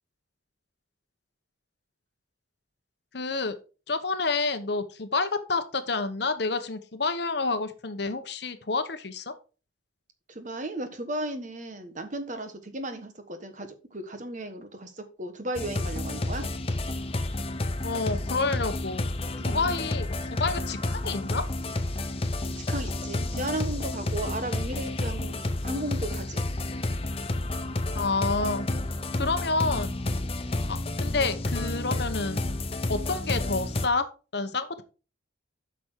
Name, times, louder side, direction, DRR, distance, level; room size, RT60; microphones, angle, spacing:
voice 1, 3.1-3.5 3.9-9.3 17.8-19.0 19.4-21.5 27.9-28.7 29.1-30.0 30.7-32.4 32.9-34.1 34.3-34.8, left 3 dB, 55° left, 10 dB, 0.9 m, -29 dB
voice 2, 10.3-16.5 19.4-19.7 22.6-26.4, right 1 dB, 40° right, 7 dB, 1.3 m, -35 dB
sound 1, 15.6-33.9, left 2 dB, 30° left, 0.7 m, -30 dB
8.5 x 6.0 x 4.5 m, 0.34 s
head